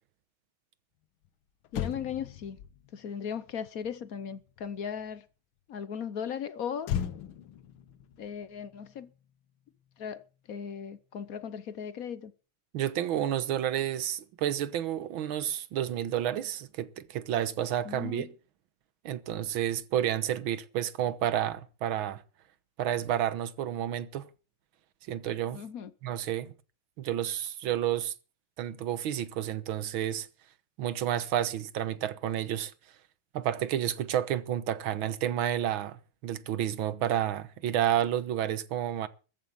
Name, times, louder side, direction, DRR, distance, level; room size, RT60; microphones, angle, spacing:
Motor vehicle (road), 1.2-1.3 1.6-5.2 6.8-9.4 9.7-10.0, left 9 dB, 80° left, 1.7 m, -39 dB
voice 1, 1.7-2.6 2.9-5.2 5.7-6.9 8.2-9.1 10.0-12.3 17.8-18.3 25.5-25.9, left 7 dB, 55° left, 1.1 m, -37 dB
voice 2, 12.7-18.3 19.1-22.2 22.8-24.3 25.1-25.6 26.0-26.5 27.0-28.1 28.6-30.3 30.8-32.7 33.3-39.1, right 11 dB, 80° right, 1.8 m, -30 dB
14.0 x 7.5 x 8.6 m
omnidirectional pair, 2.2 m